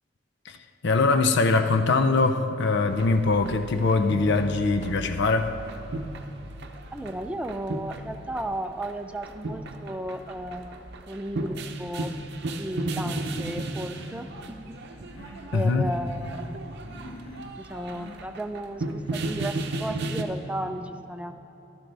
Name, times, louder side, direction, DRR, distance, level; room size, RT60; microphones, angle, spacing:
voice 1, 0.8-5.5 15.5-15.9, left 3 dB, 60° left, 0.6 m, -22 dB
sound 1, 2.9-20.2, right 2 dB, 60° right, 0.7 m, -35 dB
voice 2, 6.9-12.1 12.5-14.7 15.5-16.4 17.6-21.3, right 1 dB, 5° right, 0.4 m, -34 dB
Human voice, 12.9-13.5 13.8-14.3 14.8-15.5 15.8-16.6 16.8-17.5 17.8-18.2 18.8-19.4 19.9-20.3, equal, 80° left, 1.6 m, -45 dB
14.0 x 12.0 x 3.4 m
head